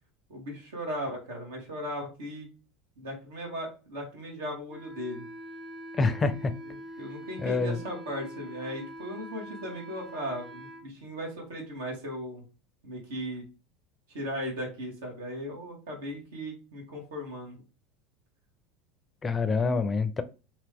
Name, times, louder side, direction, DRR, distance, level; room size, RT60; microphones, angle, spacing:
voice 1, 0.3-2.5 3.0-5.2 7.0-12.4 12.8-13.4 14.1-17.5, equal, 80° right, 0 dB, 1.5 m, -37 dB
Wind instrument woodwind instrument, 4.7-10.9, equal, 60° right, 0.8 m, -44 dB
voice 2, 6.0-6.5 7.4-7.8 19.2-20.2, left 4 dB, 25° left, 12 dB, 0.4 m, -26 dB
2.9 x 2.6 x 3.5 m, 0.33 s
hypercardioid pair, 95°, 0 cm